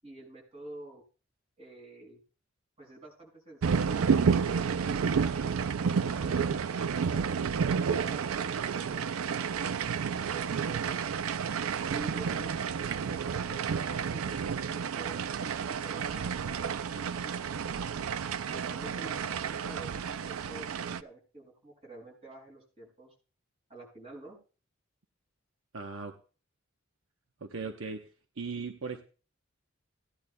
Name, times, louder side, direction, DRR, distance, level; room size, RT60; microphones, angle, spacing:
voice 1, 0.0-1.0 1.6-2.2 2.8-5.2 7.9-11.0 11.9-17.8 18.5-19.4 19.7-23.1 23.7-24.4, right 2 dB, 30° right, -1 dB, 5.8 m, -49 dB
sound 1, 3.6-21.0, right 6 dB, 90° right, 0.4 m, -30 dB
voice 2, 25.7-26.1 27.4-28.0 28.4-29.0, right 4 dB, 70° right, 4 dB, 0.9 m, -37 dB
17.0 x 10.5 x 2.2 m, 0.37 s
head